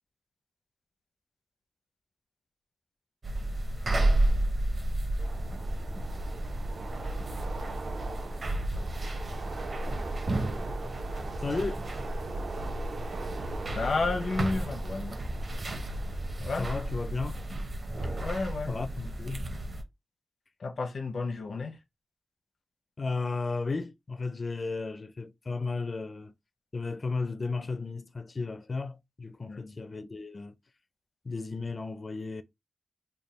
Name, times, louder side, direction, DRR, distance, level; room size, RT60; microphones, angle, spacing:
sound 1, 3.2-19.8, right 1 dB, 50° right, 0.7 m, -32 dB
Train, 5.2-17.5, right 3 dB, 80° right, 0.7 m, -41 dB
voice 1, 11.4-11.8 16.4-17.4 18.7-19.5 23.0-26.3 26.7-30.5 31.2-32.4, left 3 dB, 45° left, 0.4 m, -34 dB
voice 2, 13.7-15.2 16.4-16.7 18.2-18.7 20.6-21.8 29.5-29.8, left 3 dB, 75° left, 0.7 m, -31 dB
3.4 x 2.2 x 4.1 m
wide cardioid pair, 120°, 0 cm